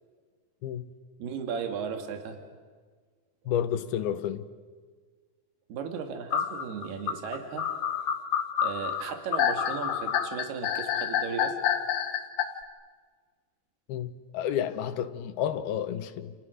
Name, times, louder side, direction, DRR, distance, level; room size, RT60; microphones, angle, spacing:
voice 1, 1.2-2.4 5.7-7.7 8.6-11.6, right 6 dB, 80° right, 4.0 m, -36 dB
voice 2, 3.5-4.5 13.9-16.4, left 10 dB, 75° left, 2.9 m, -31 dB
sound 1, 6.3-12.4, left 9 dB, 60° left, 3.5 m, -28 dB
29.5 x 29.5 x 6.4 m
omnidirectional pair, 4.5 m